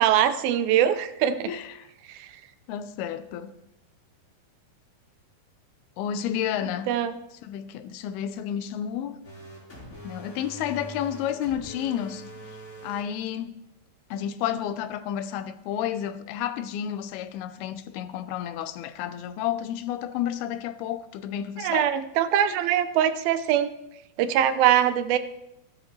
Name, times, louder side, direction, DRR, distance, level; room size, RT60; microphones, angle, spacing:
voice 1, 0.0-1.5 2.1-2.3 6.9-7.1 21.6-23.7 24.2-25.2, right 10 dB, 80° right, 2.4 m, -22 dB
voice 2, 1.5-1.9 2.7-3.5 6.0-6.9 7.4-9.2 10.0-12.2 12.8-13.5 14.1-21.9, left 10 dB, 85° left, 2.6 m, -31 dB
sound 1, 9.2-13.0, right 1 dB, 20° left, 4.3 m, -43 dB
15.0 x 13.0 x 3.2 m
omnidirectional pair, 4.4 m